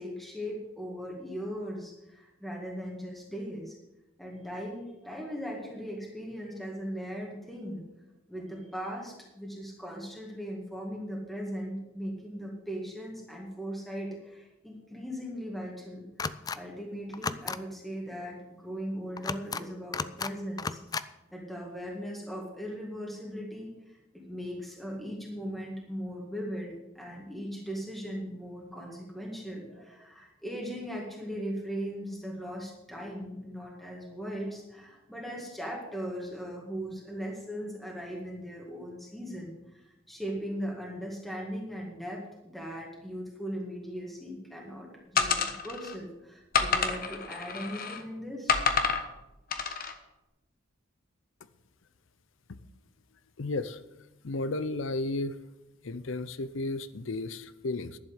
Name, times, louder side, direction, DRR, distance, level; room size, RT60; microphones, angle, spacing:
voice 1, 0.0-3.8 4.2-7.8 8.3-16.1 16.5-20.8 21.3-48.6, equal, ahead, -2 dB, 2.0 m, -39 dB
sound 1, 16.2-16.6 17.1-17.6 19.2-19.6 19.9-20.3 20.6-21.0, left 4 dB, 20° left, 0.4 m, -33 dB
sound 2, 45.2-45.9 46.5-48.0 48.5-49.0 49.5-49.9, left 5 dB, 45° left, 1.1 m, -28 dB
voice 2, 53.4-53.8 54.2-55.4 55.8-58.0, left 2 dB, 70° left, 15 dB, 0.6 m, -33 dB
11.5 x 7.3 x 8.1 m, 0.95 s
head